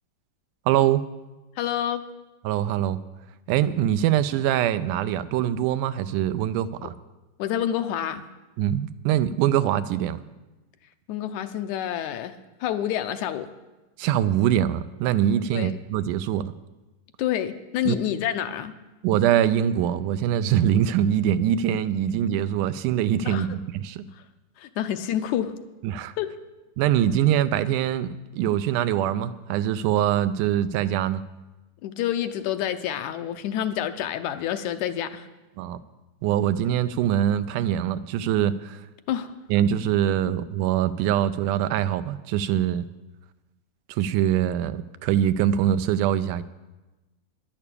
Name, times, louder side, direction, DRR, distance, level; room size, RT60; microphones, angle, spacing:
voice 1, 0.7-1.0 2.4-3.0 3.5-6.9 8.6-10.2 14.0-16.5 17.9-18.0 19.0-24.1 25.8-26.1 26.8-31.2 35.6-35.8 36.2-38.8 39.5-42.9 43.9-46.4, right 10 dB, 90° right, 13 dB, 2.1 m, -23 dB
voice 2, 1.6-2.0 7.4-8.2 11.1-12.3 12.6-13.5 15.5-15.7 17.2-18.7 23.3-23.5 24.6-25.5 26.2-26.3 31.8-35.3 39.1-39.3, left 11 dB, 80° left, 9 dB, 2.0 m, -28 dB
11.0 x 8.8 x 8.5 m, 1.1 s
omnidirectional pair, 3.6 m